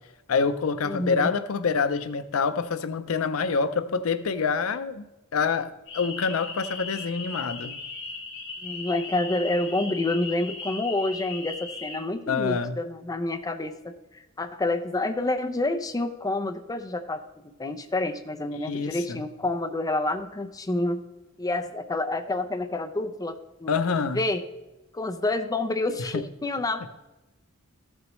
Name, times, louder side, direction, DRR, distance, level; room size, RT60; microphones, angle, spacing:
voice 1, 0.3-5.1 5.3-7.8 12.3-12.8 18.6-19.2 23.7-24.2 26.0-26.2, left 5 dB, 85° left, 12 dB, 0.5 m, -26 dB
voice 2, 0.8-1.3 8.6-21.0 21.4-24.4 24.9-26.9, left 2 dB, 15° left, 6 dB, 0.5 m, -28 dB
sound 1, 5.9-12.0, left 4 dB, 60° left, 2.3 m, -38 dB
14.0 x 6.3 x 3.1 m, 1.0 s
head